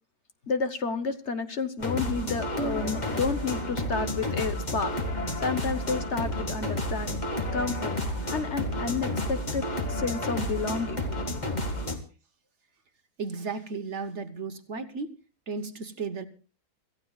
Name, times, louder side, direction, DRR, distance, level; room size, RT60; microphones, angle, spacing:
voice 1, 0.5-4.9 5.4-7.2 7.5-7.9 8.3-11.1, left 4 dB, 50° left, 9 dB, 1.3 m, -30 dB
sound 1, 1.8-12.0, left 1 dB, 30° left, 2.0 m, -31 dB
voice 2, 13.2-15.2 15.5-16.3, right 4 dB, 50° right, 9 dB, 1.3 m, -34 dB
26.5 x 15.0 x 2.4 m, 0.37 s
omnidirectional pair, 1.6 m